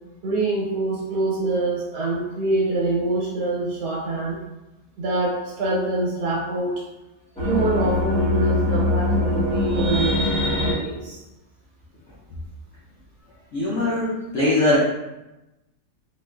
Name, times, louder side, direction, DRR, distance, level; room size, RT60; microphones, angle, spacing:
voice 1, 0.2-4.4 5.0-6.8 7.4-11.2, right 2 dB, 85° right, -5 dB, 1.3 m, -25 dB
sound 1, 7.4-10.7, left 2 dB, 5° left, 0.8 m, -22 dB
voice 2, 13.5-14.8, left 1 dB, 65° left, -7 dB, 0.8 m, -21 dB
3.7 x 2.4 x 2.2 m, 1.0 s
omnidirectional pair, 1.7 m